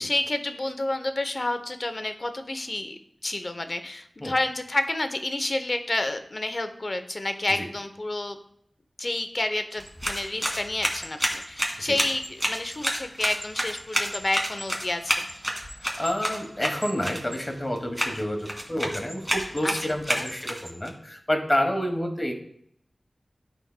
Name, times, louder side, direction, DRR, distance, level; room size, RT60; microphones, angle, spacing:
voice 1, 0.0-8.4 9.0-15.3 19.6-19.7 20.2-20.3, left 2 dB, 45° left, 8 dB, 0.7 m, -29 dB
sound 1, 9.7-20.9, equal, 10° right, 1.6 m, -31 dB
voice 2, 15.7-22.3, left 1 dB, 25° left, 4 dB, 1.2 m, -29 dB
12.0 x 4.5 x 2.2 m, 0.70 s
wide cardioid pair, 80°, 0 cm